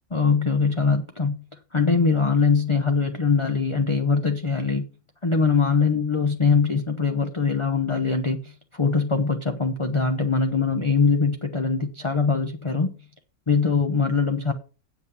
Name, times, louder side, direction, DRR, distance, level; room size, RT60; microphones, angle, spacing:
voice 1, 0.1-1.4 1.7-4.8 5.2-12.9 13.5-14.5, left 4 dB, 25° left, 0.8 m, -22 dB
8.2 x 7.9 x 5.3 m
omnidirectional pair, 1.5 m